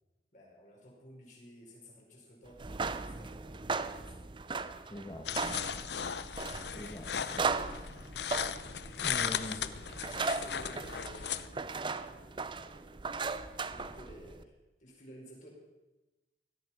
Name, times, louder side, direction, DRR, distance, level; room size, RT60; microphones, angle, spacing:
voice 1, 0.3-4.7 6.9-7.1 9.1-13.1 13.6-14.5 14.8-15.5, equal, 45° left, -2 dB, 4.8 m, -54 dB
sound 1, 2.5-14.4, right 4 dB, 25° right, 0.5 m, -38 dB
voice 2, 4.9-5.6 6.7-7.5 9.0-9.6, left 1 dB, 20° left, 1 dB, 1.3 m, -43 dB
sound 2, 5.2-11.5, left 8 dB, 65° left, 0.7 m, -37 dB
17.5 x 13.0 x 5.9 m, 1.1 s
head